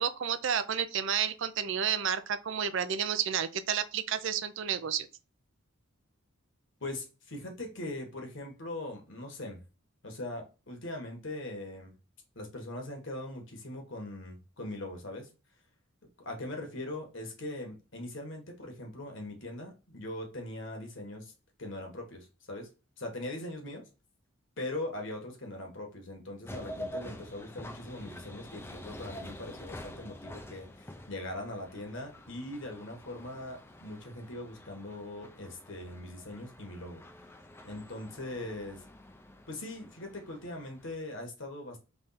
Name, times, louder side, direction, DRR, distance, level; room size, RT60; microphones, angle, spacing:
voice 1, 0.0-5.1, right 8 dB, 60° right, 0.4 m, -31 dB
voice 2, 6.8-9.6 10.0-11.9 12.3-15.3 16.2-21.3 21.6-22.7 23.0-23.8 24.6-37.0 37.6-38.8 39.5-41.8, left 1 dB, 60° left, 1.4 m, -41 dB
sound 1, 26.4-41.0, left 1 dB, 10° left, 0.4 m, -47 dB
3.5 x 3.2 x 4.0 m
head